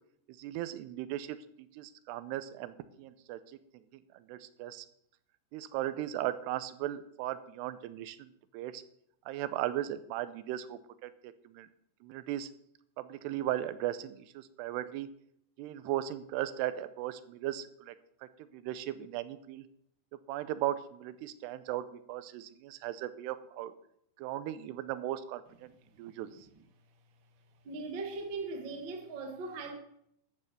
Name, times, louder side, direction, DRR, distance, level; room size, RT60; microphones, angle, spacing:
voice 1, 0.3-3.6 3.9-4.9 5.5-8.8 9.3-11.7 12.0-12.5 13.0-15.1 15.6-18.0 18.5-19.6 20.3-23.7 24.2-25.7 26.0-26.3, right 13 dB, 90° right, 2.7 m, -37 dB
voice 2, 27.6-29.7, right 3 dB, 60° right, 1.2 m, -39 dB
13.5 x 5.6 x 6.6 m
omnidirectional pair, 4.7 m